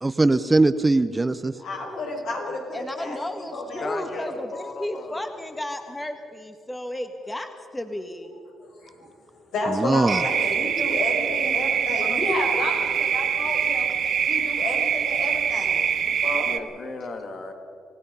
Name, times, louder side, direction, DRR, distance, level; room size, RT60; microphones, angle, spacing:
voice 1, 0.0-1.5 9.7-10.2, right 2 dB, 20° right, 12 dB, 0.7 m, -20 dB
voice 2, 1.6-3.2 3.5-4.3 8.6-13.9 14.3-15.8 16.2-16.5, left 2 dB, 75° left, 0 dB, 6.3 m, -31 dB
voice 3, 2.7-8.3, left 1 dB, 15° left, 6 dB, 1.6 m, -33 dB
voice 4, 3.8-5.3 11.4-12.2 16.5-17.5, left 3 dB, 50° left, 5 dB, 2.5 m, -36 dB
sound 1, 10.1-16.6, right 8 dB, 60° right, 1.2 m, -24 dB
28.5 x 16.5 x 5.5 m, 2.4 s
cardioid pair, 90°, 0 cm